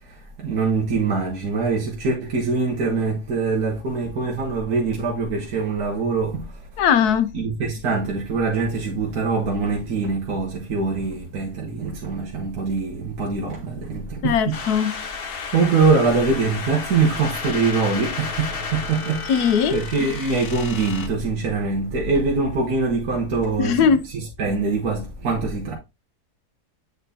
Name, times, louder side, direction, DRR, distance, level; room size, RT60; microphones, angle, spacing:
voice 1, 0.0-6.8 7.3-14.6 15.5-25.8, right 4 dB, 70° right, 1.6 m, -23 dB
voice 2, 6.8-7.3 14.2-15.0 15.3-15.5 19.3-19.8 23.6-24.0, left 7 dB, 75° left, 1.1 m, -20 dB
sound 1, 14.5-21.1, left 5 dB, 50° left, 0.8 m, -32 dB
8.1 x 4.5 x 2.7 m
omnidirectional pair, 1.7 m